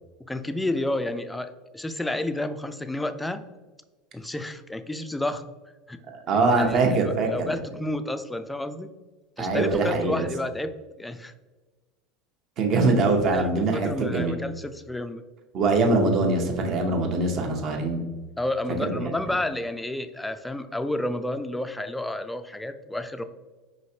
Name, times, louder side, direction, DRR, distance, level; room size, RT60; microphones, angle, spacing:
voice 1, 0.3-3.4 4.1-5.5 5.9-6.0 6.5-7.0 7.3-8.9 9.4-11.3 13.3-15.2 18.4-23.2, left 1 dB, 10° left, 9 dB, 0.3 m, -30 dB
voice 2, 6.3-7.5 9.4-10.3 12.6-14.3 15.5-18.0 18.8-19.1, right 3 dB, 50° right, 3 dB, 0.9 m, -23 dB
4.9 x 3.1 x 2.7 m, 1.3 s
hypercardioid pair, 90°, 0 cm